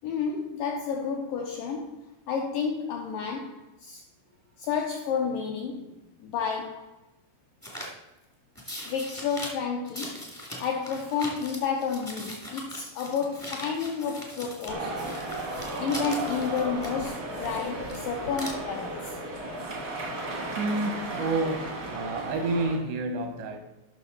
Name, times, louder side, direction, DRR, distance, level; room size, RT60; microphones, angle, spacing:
voice 1, 0.0-4.0 4.6-6.9 8.9-10.3 10.6-15.1 15.8-19.2, left 6 dB, 85° left, 1.9 m, -31 dB
sound 1, 7.6-7.9 8.5-9.5 9.8-14.7 14.9-18.0 18.2-18.5, left 1 dB, 20° left, 0.5 m, -40 dB
sound 2, 14.7-22.8, right 1 dB, 65° right, 0.8 m, -34 dB
voice 2, 20.6-23.6, right 2 dB, 85° right, 3.5 m, -29 dB
12.0 x 6.1 x 4.0 m
omnidirectional pair, 4.9 m